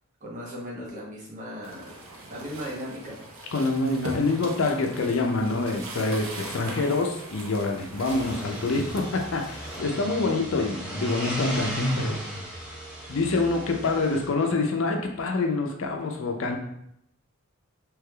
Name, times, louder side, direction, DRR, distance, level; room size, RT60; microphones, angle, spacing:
voice 1, 0.2-1.9 2.3-3.2, equal, 35° right, -4 dB, 0.9 m, -37 dB
sound 1, 1.6-9.8, right 2 dB, 70° right, 0.6 m, -40 dB
voice 2, 3.5-12.2 13.1-16.6, left 3 dB, 65° left, 3 dB, 0.5 m, -26 dB
carr arranc, 8.0-14.3, equal, 5° right, 0.8 m, -34 dB
3.3 x 3.1 x 2.2 m, 0.75 s
head